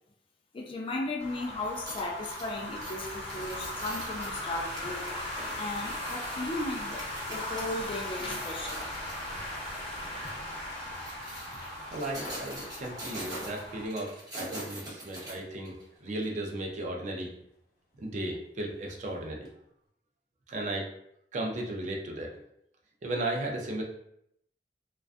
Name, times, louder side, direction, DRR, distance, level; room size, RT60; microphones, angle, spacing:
voice 1, 0.5-5.1 5.6-8.8 10.2-10.3, left 2 dB, 30° left, 0.3 m, -36 dB
sound 1, 1.2-13.9, left 1 dB, 5° left, 1.1 m, -38 dB
sound 2, 1.6-7.6 8.1-9.2 9.7-9.9 10.7-15.8 16.2-16.3, right 1 dB, 20° right, 0.8 m, -43 dB
Skateboard, 10.0-19.6, left 1 dB, 55° left, 0.7 m, -53 dB
voice 2, 11.9-15.7 16.0-17.3 18.0-19.5 20.5-20.9 21.3-22.4 23.0-23.8, right 1 dB, 45° right, 0.4 m, -35 dB
2.4 x 2.2 x 2.4 m
head